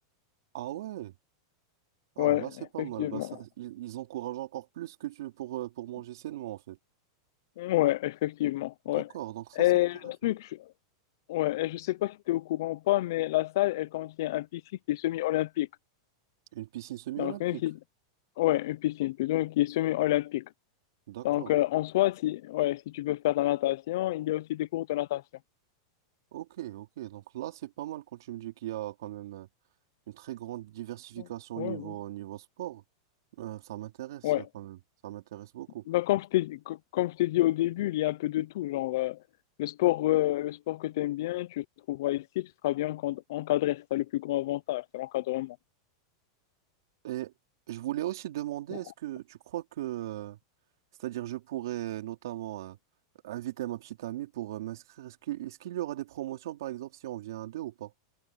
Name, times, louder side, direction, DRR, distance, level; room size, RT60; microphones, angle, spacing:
voice 1, 0.5-1.1 2.2-6.8 8.9-9.7 16.5-17.6 21.1-21.5 26.3-29.5 30.1-32.8 33.4-34.8 35.0-35.9 47.0-47.3 47.7-50.4 51.0-52.8 53.2-57.9, right 14 dB, 75° right, 3.6 m, -38 dB
voice 2, 2.2-2.5 2.8-3.4 7.6-9.1 9.6-10.6 11.3-14.6 14.9-15.7 17.2-17.8 18.4-20.4 21.2-25.2 31.6-31.9 34.2-34.5 35.9-39.2 39.6-45.6, left 16 dB, 65° left, 0.7 m, -28 dB
supercardioid pair, 145°, 2 cm